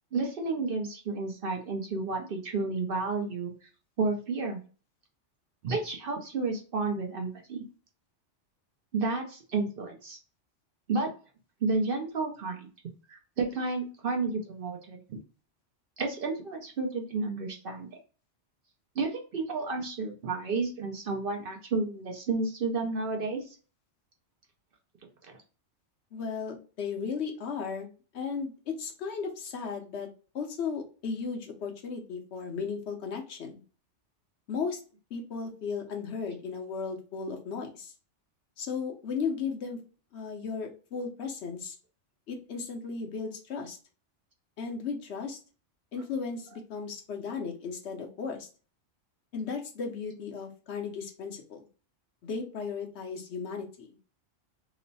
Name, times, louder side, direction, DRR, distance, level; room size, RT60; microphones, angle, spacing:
voice 1, 0.1-3.5 4.0-4.6 5.6-7.6 8.9-10.2 10.9-11.1 11.6-12.7 13.1-15.2 16.0-17.9 19.0-23.4, right 3 dB, 55° right, 3 dB, 0.7 m, -31 dB
voice 2, 26.1-30.1 30.3-33.6 34.5-34.8 35.1-37.9 38.6-39.8 40.1-41.8 42.3-43.8 44.6-45.4 45.9-48.5 49.3-51.6 52.2-53.9, left 5 dB, 65° left, 2 dB, 0.9 m, -35 dB
3.0 x 2.1 x 3.9 m, 0.37 s
omnidirectional pair, 1.2 m